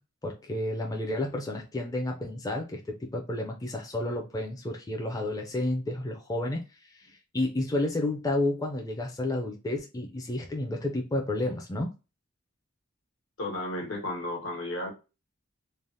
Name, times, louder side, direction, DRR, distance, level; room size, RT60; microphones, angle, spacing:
voice 1, 0.2-11.9, left 1 dB, 15° left, 0.4 m, -31 dB
voice 2, 13.4-14.9, left 1 dB, 75° left, 1.2 m, -33 dB
3.2 x 2.0 x 2.6 m
head